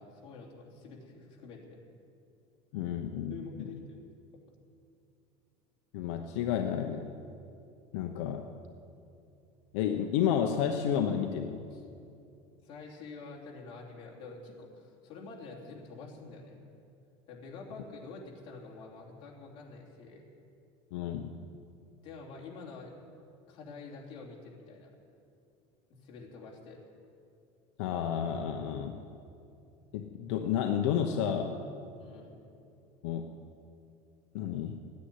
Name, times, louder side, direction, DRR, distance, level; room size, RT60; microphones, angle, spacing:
voice 1, 0.0-1.8 2.8-2.9 3.3-4.0 4.3-4.4 11.7-11.9 12.6-16.6 17.3-20.3 22.0-22.9 23.5-24.9 25.9-26.8 32.0-32.4, left 4 dB, 35° left, -2 dB, 3.0 m, -47 dB
voice 2, 2.7-3.3 5.9-7.2 7.9-8.5 9.7-11.6 20.9-21.3 27.8-29.0 29.9-31.6 33.0-33.4 34.3-34.8, left 8 dB, 70° left, 4 dB, 1.0 m, -31 dB
15.0 x 9.7 x 9.7 m, 2.6 s
cardioid pair, 175°, 15 cm